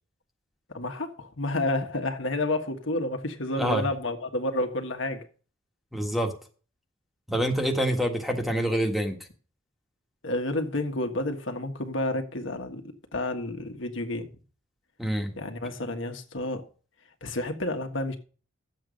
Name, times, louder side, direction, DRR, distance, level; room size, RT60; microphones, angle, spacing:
voice 1, 0.7-5.3 10.2-12.8 13.1-14.3 15.4-16.7 17.2-18.2, left 2 dB, 70° left, 1.6 m, -30 dB
voice 2, 5.9-6.3 7.3-9.2 15.0-15.3, equal, ahead, 1.5 m, -26 dB
11.5 x 7.8 x 5.2 m
head